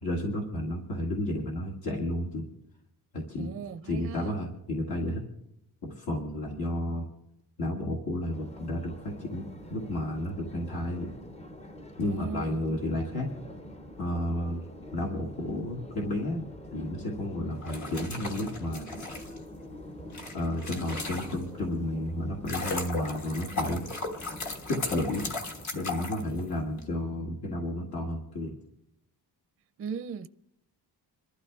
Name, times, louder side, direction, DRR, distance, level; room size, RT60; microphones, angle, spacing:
voice 1, 0.0-2.5 3.1-3.5 3.8-5.2 5.8-7.1 7.6-11.1 12.0-13.3 14.0-19.0 20.3-23.8 24.7-25.2 25.7-28.6, left 1 dB, 70° left, 2.0 m, -32 dB
voice 2, 3.4-4.4 12.0-12.6 29.8-30.3, right 6 dB, 35° right, 0.4 m, -38 dB
Subway metro underground, 8.3-25.6, equal, 15° left, 0.6 m, -46 dB
sound 1, 17.5-21.7 22.1-26.8, left 3 dB, 45° left, 1.5 m, -36 dB
27.0 x 12.5 x 2.4 m
wide cardioid pair, 175°, 39 cm